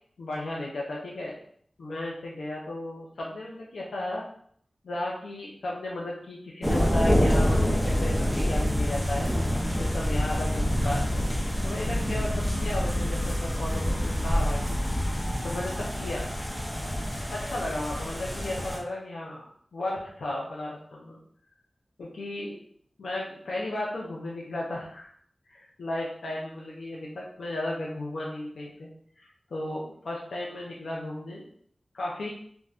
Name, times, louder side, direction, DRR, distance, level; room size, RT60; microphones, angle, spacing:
voice 1, 0.2-1.3 1.8-4.2 4.8-9.3 9.8-11.3 11.6-12.3 12.6-14.8 15.2-16.3 17.3-19.4 19.7-21.2 22.0-22.6 23.0-25.1 25.5-28.9 29.2-31.4 31.9-32.3, left 1 dB, 85° left, -4 dB, 0.5 m, -34 dB
sound 1, 6.6-18.8, equal, 15° left, 0.6 m, -27 dB
2.5 x 2.2 x 3.4 m, 0.62 s
cardioid pair, 50°, 0 cm